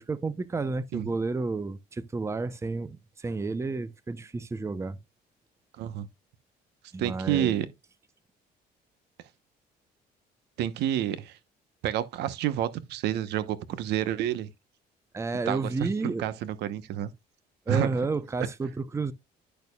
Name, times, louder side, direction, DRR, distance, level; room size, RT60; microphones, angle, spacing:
voice 1, 0.0-5.0 6.9-7.5 15.1-16.2 17.7-19.1, right 3 dB, 15° right, 0.7 m, -31 dB
voice 2, 5.8-6.1 7.0-7.7 10.6-11.4 11.8-14.5 15.5-17.1 17.7-18.0, right 11 dB, 80° right, 1.0 m, -29 dB
10.5 x 6.6 x 2.3 m
cardioid pair, 110°, 17 cm